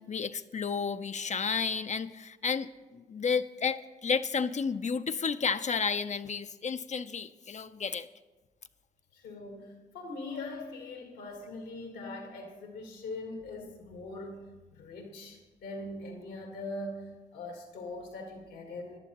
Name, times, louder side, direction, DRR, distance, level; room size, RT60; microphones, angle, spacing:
voice 1, 0.0-8.1, left 5 dB, 45° left, 11 dB, 0.5 m, -32 dB
voice 2, 9.1-14.5 14.7-19.0, left 2 dB, 85° left, 3 dB, 1.6 m, -41 dB
17.0 x 11.0 x 3.0 m, 1.2 s
supercardioid pair, 40°, 17 cm